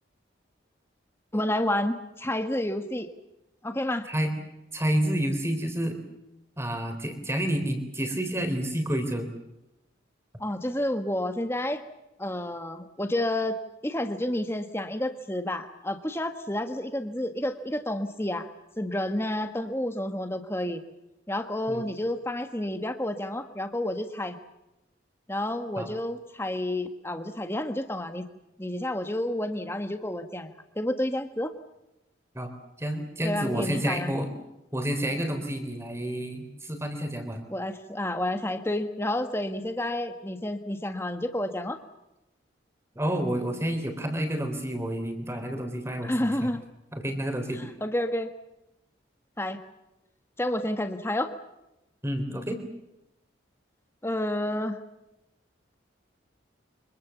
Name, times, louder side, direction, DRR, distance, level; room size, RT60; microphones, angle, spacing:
voice 1, 1.3-3.1 3.6-4.1 10.4-11.8 12.2-18.5 18.8-20.8 21.3-24.4 25.3-28.3 28.6-30.5 30.7-31.5 33.2-34.1 37.5-41.8 46.0-46.6 47.8-48.3 49.4-49.6 50.4-51.3 54.0-54.8, left 1 dB, 15° left, 7 dB, 1.5 m, -30 dB
voice 2, 4.7-6.0 6.6-9.3 21.7-21.8 25.8-25.9 32.3-32.5 32.8-34.3 34.7-37.4 43.0-46.5 46.9-47.6 52.0-52.6, right 1 dB, 15° right, 6 dB, 3.6 m, -29 dB
25.0 x 23.5 x 7.1 m, 0.92 s
head